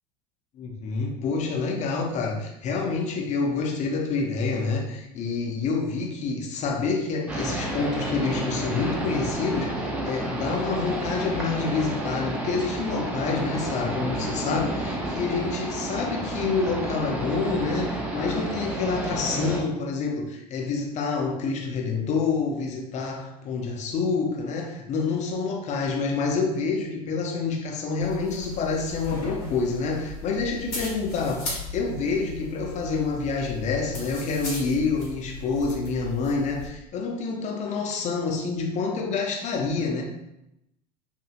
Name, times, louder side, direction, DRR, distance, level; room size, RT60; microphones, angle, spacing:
voice 1, 0.5-40.0, left 4 dB, 35° left, 1 dB, 0.7 m, -27 dB
sound 1, 7.3-19.6, right 1 dB, 5° right, 0.6 m, -30 dB
sound 2, 28.0-36.7, left 2 dB, 75° left, 1.2 m, -37 dB
2.8 x 2.7 x 2.5 m, 0.87 s
hypercardioid pair, 80°, 20 cm